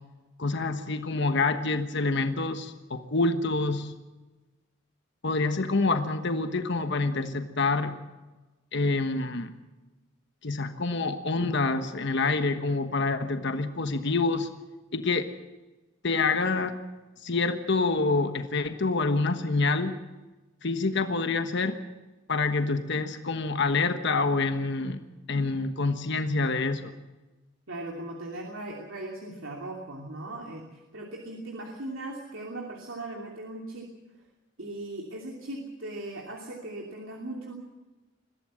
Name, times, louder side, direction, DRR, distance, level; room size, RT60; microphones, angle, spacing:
voice 1, 0.4-3.9 5.2-7.9 8.7-9.5 10.4-14.5 14.9-15.3 16.0-16.7 17.2-19.9 20.6-21.8 22.3-25.0 25.3-26.9, left 3 dB, 60° left, 8 dB, 1.3 m, -27 dB
voice 2, 27.7-33.9 34.6-37.5, right 2 dB, 85° right, 0 dB, 2.9 m, -38 dB
22.0 x 15.5 x 7.6 m, 1.2 s
head